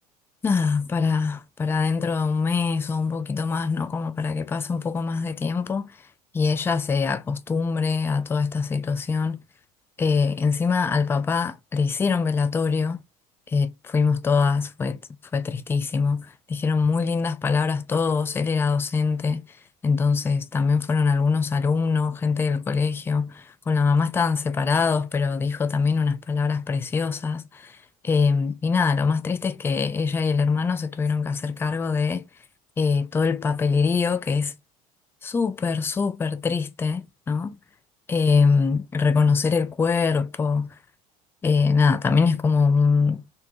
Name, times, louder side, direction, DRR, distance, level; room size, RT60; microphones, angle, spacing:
voice 1, 0.4-5.9 6.3-9.4 10.0-13.0 13.5-15.0 15.3-19.4 19.8-27.7 28.0-32.2 32.8-34.5 35.2-37.6 38.1-40.7 41.4-43.2, left 5 dB, 10° left, 0.3 m, -23 dB
3.9 x 2.2 x 2.6 m
figure-of-eight pair, 70°, 20 cm